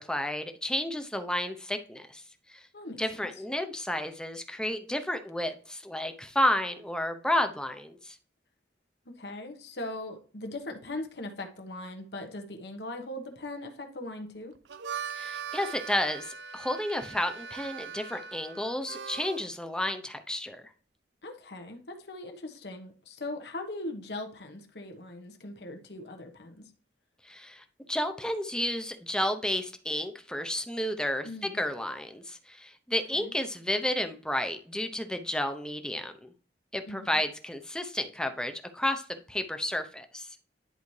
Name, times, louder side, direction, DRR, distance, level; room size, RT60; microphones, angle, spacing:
voice 1, 0.0-2.2 2.5-2.6 3.0-8.2 15.1-20.6 27.2-31.3 31.5-36.3 36.7-40.3, left 1 dB, 5° left, 7 dB, 0.7 m, -31 dB
voice 2, 2.7-3.3 9.0-14.5 21.2-26.7 31.2-31.6 33.1-33.3 36.9-37.2, left 2 dB, 70° left, 4 dB, 1.2 m, -40 dB
Harmonica, 14.5-19.5, right 7 dB, 90° right, 0.5 m, -40 dB
10.5 x 4.2 x 3.2 m, 0.42 s
head